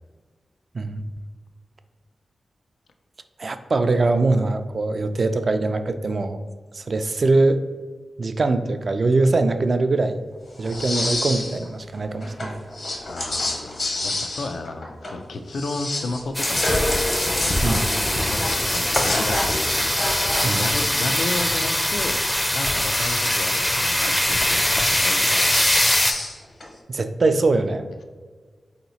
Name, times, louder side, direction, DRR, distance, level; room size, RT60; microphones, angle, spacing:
voice 1, 3.4-6.4 6.7-7.6 8.2-10.2 10.6-12.6 17.6-17.8 20.4-20.7 26.9-27.8, right 3 dB, 55° right, 9 dB, 0.3 m, -22 dB
sound 1, 10.6-11.7 11.9-15.2 15.5-22.0 22.6-23.6 24.0-24.6 24.8-26.7, left 1 dB, 60° left, 0.8 m, -28 dB
voice 2, 13.1-16.9 17.6-19.7 20.5-22.2 22.5-25.7, left 2 dB, 80° left, 6 dB, 0.3 m, -33 dB
sound 2, 16.3-26.1, left 1 dB, 15° left, 0.4 m, -22 dB
4.1 x 2.9 x 4.0 m, 1.5 s
cardioid pair, 55°, 0 cm